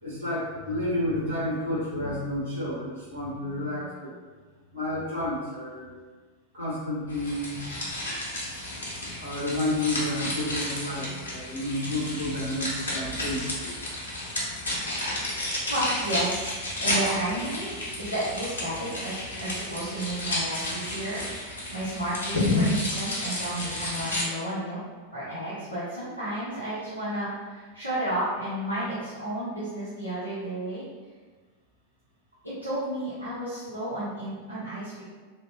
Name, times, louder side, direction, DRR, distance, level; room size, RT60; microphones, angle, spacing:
voice 1, 0.0-4.1 4.7-5.9 6.5-7.5 9.2-13.8, left 1 dB, 65° right, -9 dB, 1.2 m, -30 dB
sound 1, 7.1-24.2, left 1 dB, 70° left, 0.6 m, -31 dB
voice 2, 15.7-16.5 16.8-17.7 18.0-24.8 25.1-30.8 32.4-35.0, right 1 dB, 90° right, -13 dB, 0.6 m, -32 dB
2.8 x 2.0 x 2.4 m, 1.4 s
figure-of-eight pair, 90°, 0 cm